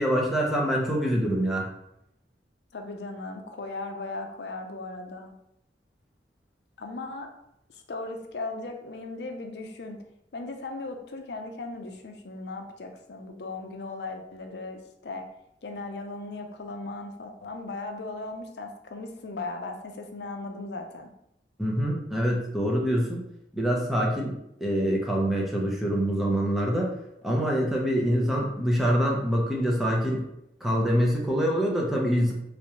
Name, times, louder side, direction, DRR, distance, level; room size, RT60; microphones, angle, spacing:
voice 1, 0.0-1.7 21.6-23.2 23.5-26.9 27.2-30.2 30.6-32.3, equal, ahead, -2 dB, 0.6 m, -25 dB
voice 2, 2.7-5.3 6.8-7.3 7.7-10.0 10.3-15.3 15.6-21.1, left 2 dB, 65° left, 4 dB, 0.5 m, -37 dB
3.4 x 3.0 x 2.9 m, 0.81 s
head